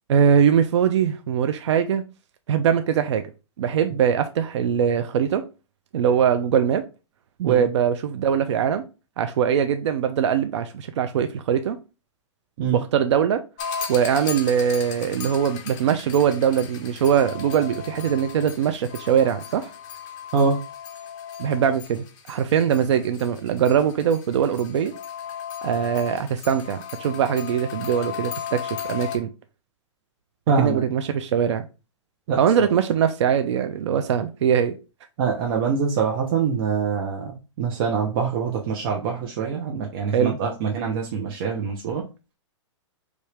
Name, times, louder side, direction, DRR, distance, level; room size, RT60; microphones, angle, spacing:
voice 1, 0.1-2.0 2.5-3.2 3.6-5.4 5.9-6.8 7.4-8.8 9.2-11.8 12.7-13.4 13.9-19.7 21.4-24.9 25.6-28.6 28.9-29.3 30.6-31.7 32.4-34.8 40.1-40.4, right 8 dB, 65° right, 8 dB, 0.6 m, -21 dB
sound 1, 13.6-29.2, left 8 dB, 40° left, 0.8 m, -36 dB
voice 2, 30.5-30.8 32.3-32.7 35.2-37.3 37.6-42.0, right 6 dB, 45° right, 0 dB, 0.9 m, -24 dB
4.9 x 2.7 x 3.4 m, 0.30 s
hypercardioid pair, 135°, 16 cm